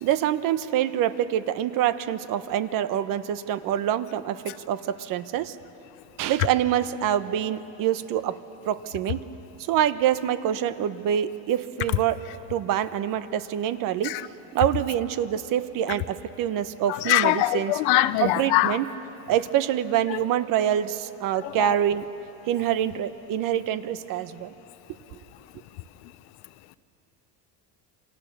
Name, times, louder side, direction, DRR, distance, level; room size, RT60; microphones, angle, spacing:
voice 1, 0.0-5.6 6.2-8.4 8.6-9.2 9.7-12.2 12.5-14.2 14.5-17.8 18.2-18.9 19.3-22.1 22.5-24.5, right 11 dB, 60° right, 12 dB, 1.0 m, -26 dB
voice 2, 17.1-18.7, left 16 dB, 75° left, 13 dB, 0.9 m, -21 dB
28.5 x 24.0 x 6.8 m, 3.0 s
cardioid pair, 125°, 38 cm